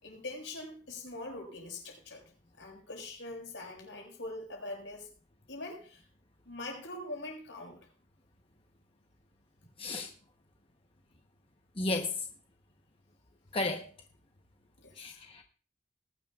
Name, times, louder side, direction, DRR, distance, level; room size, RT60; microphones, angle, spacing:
voice 1, 0.0-2.2 2.6-5.1 5.5-6.0 6.4-7.9 14.8-15.2, left 2 dB, 75° left, 2 dB, 5.4 m, -43 dB
voice 2, 9.8-10.1 11.8-12.1 13.5-13.8 15.0-15.4, left 2 dB, 30° left, 3 dB, 1.0 m, -33 dB
20.0 x 11.0 x 2.4 m, 0.38 s
head